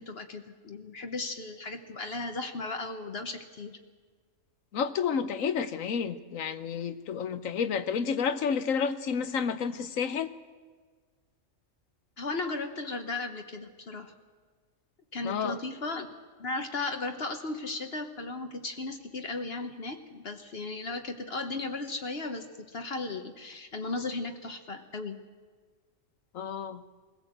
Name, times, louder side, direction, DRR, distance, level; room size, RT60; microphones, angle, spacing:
voice 1, 0.0-3.8 12.2-14.1 15.1-16.1 16.4-25.2, left 3 dB, 50° left, 6 dB, 1.3 m, -36 dB
voice 2, 4.7-10.3 15.2-15.6 26.3-26.8, left 6 dB, 90° left, 12 dB, 1.3 m, -30 dB
21.5 x 16.0 x 7.9 m, 1.5 s
omnidirectional pair, 1.3 m